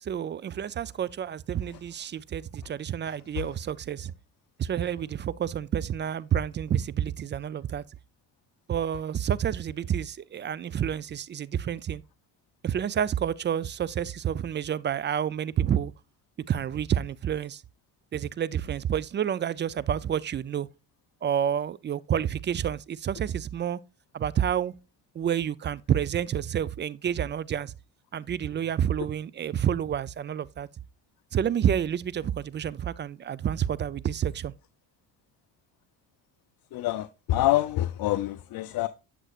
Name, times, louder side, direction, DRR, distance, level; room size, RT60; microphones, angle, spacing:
voice 1, 0.0-4.1 4.6-7.8 8.7-12.0 12.6-15.9 16.5-17.6 18.1-20.7 21.2-23.8 24.1-24.7 25.1-27.7 28.1-30.7 31.3-34.5, right 9 dB, 25° right, 0.4 m, -29 dB
voice 2, 36.7-38.9, left 15 dB, 55° left, 0.6 m, -26 dB
8.0 x 7.4 x 2.4 m
supercardioid pair, 70°, 43 cm